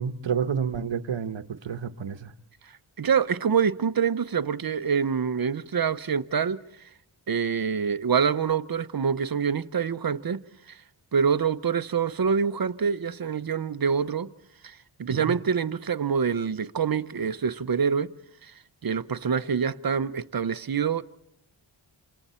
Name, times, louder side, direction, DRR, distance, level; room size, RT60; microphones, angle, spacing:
voice 1, 0.0-2.3 15.1-15.3, right 7 dB, 70° right, 1.1 m, -30 dB
voice 2, 3.0-6.6 7.3-10.4 10.7-10.8 11.1-14.3 14.6-18.1 18.8-21.0, right 6 dB, 45° right, 0.8 m, -26 dB
28.5 x 27.0 x 4.3 m
wide cardioid pair, 75°, 48 cm